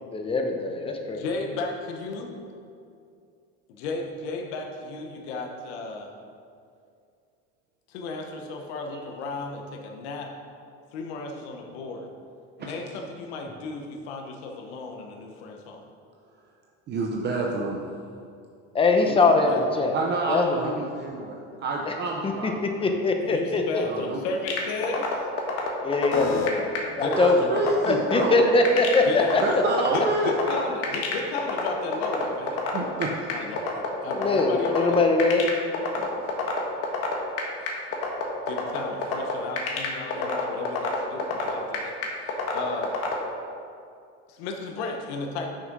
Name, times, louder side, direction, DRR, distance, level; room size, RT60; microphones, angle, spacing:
voice 1, 0.1-0.8 1.1-1.2 18.7-20.0 20.3-20.7 22.2-22.5 22.8-23.8 25.8-26.7 27.0-27.4 27.8-29.0 34.1-35.4 35.9-36.1, left 3 dB, 15° left, 4 dB, 0.8 m, -22 dB
voice 2, 1.2-2.4 3.7-6.1 7.9-10.3 10.9-12.1 12.6-15.8 19.0-19.9 20.2-20.7 23.2-25.2 26.1-26.5 27.0-27.7 29.0-29.6 29.9-32.6 33.3-35.0 37.6-37.8 38.5-43.0 44.3-45.5, left 3 dB, 85° left, 2 dB, 1.0 m, -34 dB
voice 3, 16.9-17.8 19.9-23.1 23.8-24.2 27.1-28.5 29.4-30.3 32.7-33.3, right 3 dB, 35° right, 0 dB, 0.7 m, -29 dB
sound 1, 24.5-43.1, left 5 dB, 50° left, 1.4 m, -27 dB
6.5 x 6.2 x 5.3 m, 2.4 s
cardioid pair, 135°, 31 cm